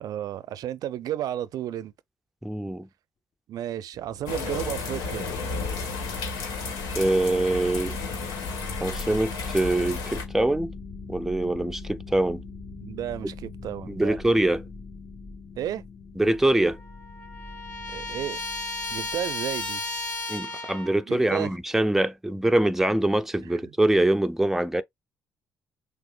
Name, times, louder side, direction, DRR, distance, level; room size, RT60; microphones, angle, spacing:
voice 1, 0.0-1.9 3.5-5.3 12.8-14.2 15.6-15.8 17.9-18.4 18.9-19.8 21.1-21.5 23.4-23.7, right 11 dB, 70° right, 0.5 m, -32 dB
voice 2, 2.4-2.9 6.9-8.0 8.8-10.7 11.1-12.4 13.9-14.6 16.2-16.8 20.3-24.8, right 1 dB, 5° right, 0.6 m, -24 dB
sound 1, 3.9-20.2, left 3 dB, 55° left, 2.4 m, -42 dB
sound 2, 4.2-10.2, left 4 dB, 80° left, 1.5 m, -33 dB
Trumpet, 16.3-16.4 16.6-21.0, left 2 dB, 20° left, 3.3 m, -34 dB
6.2 x 2.5 x 2.3 m
supercardioid pair, 55°, 7 cm